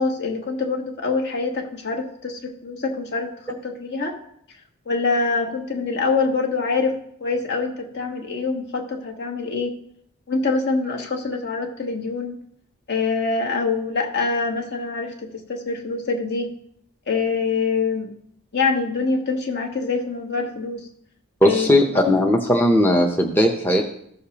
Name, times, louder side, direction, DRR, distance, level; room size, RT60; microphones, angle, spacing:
voice 1, 0.0-4.1 4.9-9.8 10.3-12.4 12.9-16.5 17.1-18.1 18.5-20.9 21.4-22.0, left 4 dB, 50° left, 2 dB, 1.3 m, -25 dB
voice 2, 21.4-23.8, left 1 dB, 10° left, 2 dB, 0.7 m, -18 dB
14.5 x 6.5 x 2.9 m, 0.70 s
head